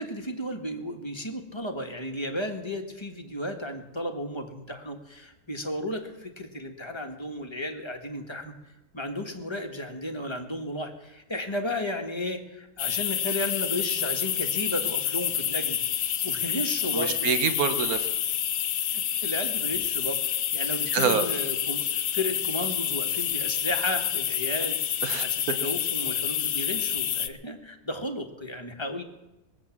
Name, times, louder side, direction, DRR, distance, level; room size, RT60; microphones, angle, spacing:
voice 1, 0.0-8.5 8.9-15.8 16.2-17.3 18.9-29.0, left 1 dB, 15° left, 3 dB, 1.4 m, -34 dB
sound 1, 12.8-27.3, left 10 dB, 65° left, 1.1 m, -28 dB
voice 2, 16.9-18.1 20.9-21.2 25.0-25.2, right 6 dB, 60° right, 9 dB, 1.5 m, -26 dB
21.0 x 8.0 x 7.3 m, 0.97 s
omnidirectional pair, 1.8 m